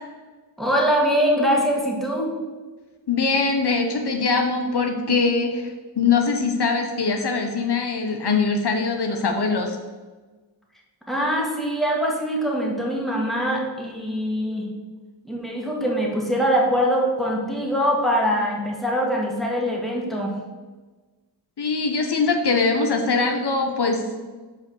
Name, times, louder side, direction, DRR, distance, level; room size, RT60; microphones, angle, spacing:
voice 1, 0.6-2.3 11.1-14.7 15.2-20.3, equal, ahead, -2 dB, 1.8 m, -23 dB
voice 2, 3.1-5.7 6.0-9.8 21.6-24.2, left 4 dB, 65° left, 3 dB, 0.9 m, -22 dB
5.2 x 4.9 x 6.4 m, 1.3 s
wide cardioid pair, 75°, 42 cm